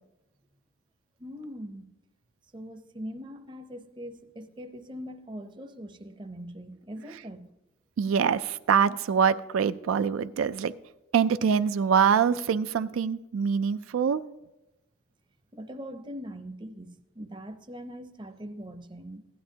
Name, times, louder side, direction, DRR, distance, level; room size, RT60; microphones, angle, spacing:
voice 1, 1.2-1.9 2.5-7.5 15.5-19.3, equal, 25° right, 0.6 m, -41 dB
voice 2, 8.0-10.7 11.1-14.2, right 7 dB, 85° right, 0.4 m, -24 dB
15.5 x 11.0 x 2.8 m
head